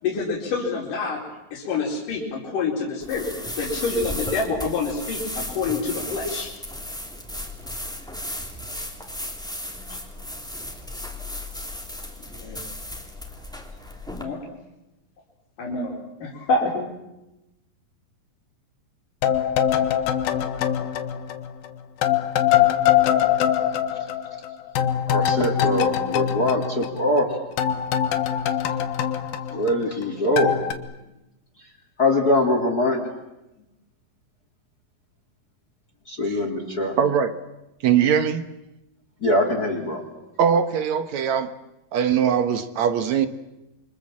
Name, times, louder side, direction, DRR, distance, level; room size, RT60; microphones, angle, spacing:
voice 1, 0.0-1.2 1.5-6.5 9.9-10.0 12.2-12.6 14.2-14.5 15.6-16.9, left 4 dB, 65° left, 5.8 m, -27 dB
sound 1, 3.0-14.2, left 1 dB, ahead, 2.5 m, -35 dB
sound 2, 19.2-21.7 22.0-27.3 27.6-30.0 30.4-30.7, left 10 dB, 90° left, 3.3 m, -23 dB
voice 2, 25.1-27.4 29.5-30.6 32.0-33.0 36.1-36.9 39.2-40.1, left 1 dB, 25° left, 3.2 m, -22 dB
voice 3, 37.0-37.3 37.8-38.5 40.4-41.5 41.9-43.3, right 8 dB, 60° right, 2.2 m, -21 dB
28.5 x 25.0 x 7.5 m
omnidirectional pair, 4.1 m